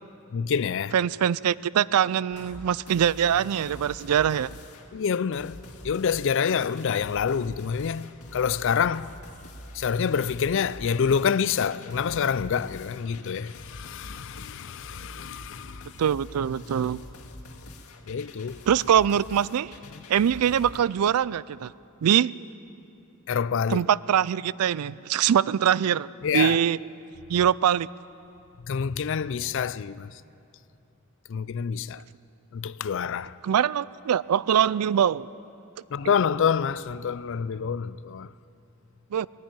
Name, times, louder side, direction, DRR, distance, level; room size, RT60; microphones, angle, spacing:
voice 1, 0.3-0.9 4.9-9.1 9.7-15.9 18.1-18.6 23.3-23.8 26.2-26.6 28.6-30.1 31.3-32.0 32.5-33.4 35.9-38.3, left 7 dB, 55° left, 0.4 m, -27 dB
voice 2, 0.9-4.5 16.0-17.0 18.7-19.7 20.1-21.7 22.0-22.3 23.7-26.1 26.3-26.8 27.3-27.9 33.4-35.3 39.1-39.3, right 9 dB, 85° right, 0.4 m, -23 dB
sound 1, 2.3-20.8, left 1 dB, 80° left, 2.0 m, -45 dB
20.0 x 15.0 x 9.1 m
head